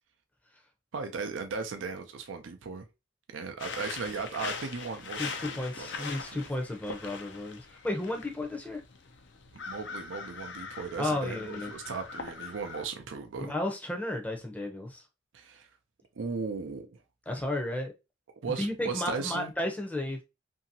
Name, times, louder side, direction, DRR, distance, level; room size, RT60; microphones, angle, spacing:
voice 1, 0.9-2.8 3.3-6.5 9.7-13.5 15.3-15.7 16.2-17.0 18.4-19.5, right 5 dB, 90° right, 0.5 m, -37 dB
sound 1, 3.6-12.8, left 5 dB, 70° left, 0.5 m, -41 dB
voice 2, 5.2-8.8 11.0-11.7 13.4-15.0 17.3-17.9 18.6-20.2, left 1 dB, 10° left, 0.6 m, -33 dB
2.8 x 2.7 x 2.6 m
head